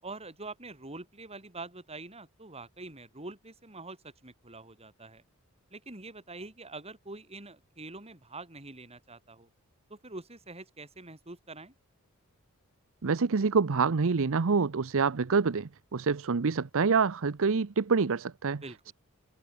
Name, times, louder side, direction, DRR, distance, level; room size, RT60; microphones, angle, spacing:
voice 1, 0.0-5.2 5.7-9.5 9.9-11.7 18.6-18.9, right 2 dB, 30° right, 6.0 m, -45 dB
voice 2, 13.0-18.6, right 5 dB, 65° right, 0.7 m, -26 dB
head